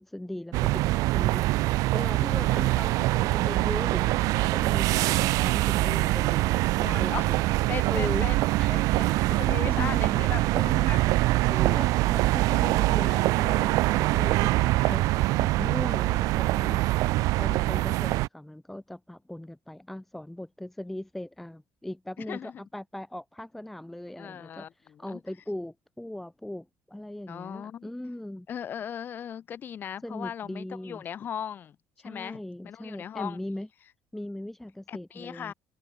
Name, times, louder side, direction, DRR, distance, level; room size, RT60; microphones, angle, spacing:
voice 1, 0.0-1.6 1.9-6.5 7.0-7.5 7.9-8.2 8.6-8.7 9.0-10.2 10.5-10.9 11.4-16.9 17.4-28.5 30.0-31.0 32.0-33.7 34.1-35.5, left 1 dB, 5° left, 0.7 m, -39 dB
sound 1, 0.5-18.3, right 19 dB, 65° right, 0.5 m, -24 dB
voice 2, 6.7-7.2 7.7-8.4 8.7-11.0 12.5-12.6 13.0-13.3 14.8-15.0 22.3-22.6 24.2-25.2 27.3-27.9 28.5-31.8 32.0-33.4 34.9-35.5, left 9 dB, 30° left, 2.1 m, -38 dB
cardioid pair, 180°, 6 cm